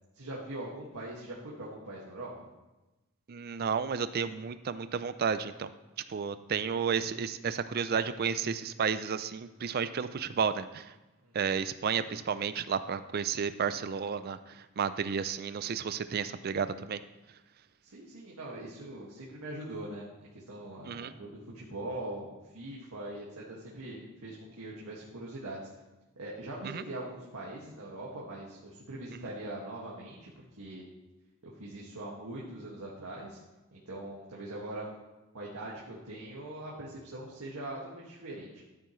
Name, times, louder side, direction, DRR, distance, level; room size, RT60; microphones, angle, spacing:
voice 1, 0.1-2.5 11.2-11.3 17.8-20.1 20.3-25.6 26.2-30.3 30.6-30.8 31.4-33.4 33.7-34.8 35.3-38.7, right 1 dB, 90° right, -5 dB, 1.9 m, -42 dB
voice 2, 3.3-5.7 6.1-10.9 11.3-17.0 20.8-21.1 26.6-26.8, right 6 dB, 45° right, 13 dB, 0.4 m, -32 dB
13.0 x 8.5 x 3.2 m, 1.1 s
head